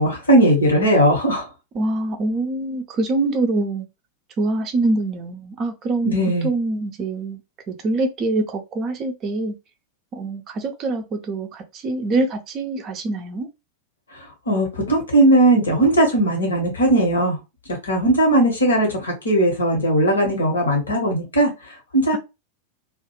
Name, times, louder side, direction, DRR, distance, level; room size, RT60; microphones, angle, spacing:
voice 1, 0.0-1.5 6.0-6.5 14.5-17.4 17.7-22.2, right 1 dB, 70° left, 1.0 m, -18 dB
voice 2, 1.7-3.9 4.4-6.2 6.4-7.4 7.7-9.5 10.1-13.5, right 2 dB, 30° right, 0.4 m, -24 dB
2.3 x 2.1 x 2.9 m
figure-of-eight pair, 90°, 0 cm